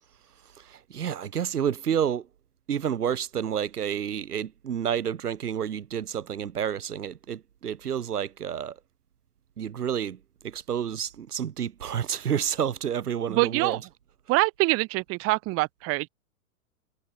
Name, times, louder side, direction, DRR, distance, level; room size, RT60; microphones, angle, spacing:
voice 1, 0.7-2.3 2.7-8.8 9.6-10.2 10.4-13.8, right 8 dB, 85° right, 2.4 m, -29 dB
voice 2, 13.3-13.8 14.3-16.1, right 23 dB, 30° right, 1.0 m, -25 dB
hypercardioid pair, 120°, 45 cm